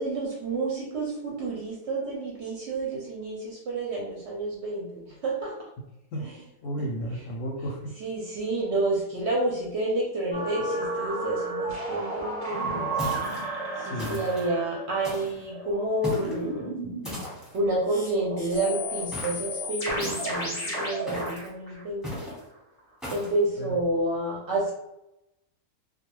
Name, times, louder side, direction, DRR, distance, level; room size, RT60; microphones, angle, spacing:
voice 1, 0.0-5.5 6.2-6.3 8.0-13.0 13.8-16.7 17.5-22.3 23.1-24.7, right 2 dB, 60° right, -3 dB, 0.8 m, -29 dB
voice 2, 6.6-7.9 13.8-14.2 23.6-23.8, equal, 70° left, 0 dB, 0.9 m, -33 dB
sound 1, 10.3-17.2 17.9-22.4 22.8-22.9, right 1 dB, 45° left, 0.4 m, -33 dB
sound 2, 13.0-13.5 14.0-14.5 15.0-15.4 16.0-16.4 17.0-17.6 19.1-19.5 20.0-20.5 21.1-21.5 22.0-22.4 23.0-23.4, left 1 dB, ahead, 0.9 m, -36 dB
2.3 x 2.2 x 3.0 m, 0.86 s
omnidirectional pair, 1.5 m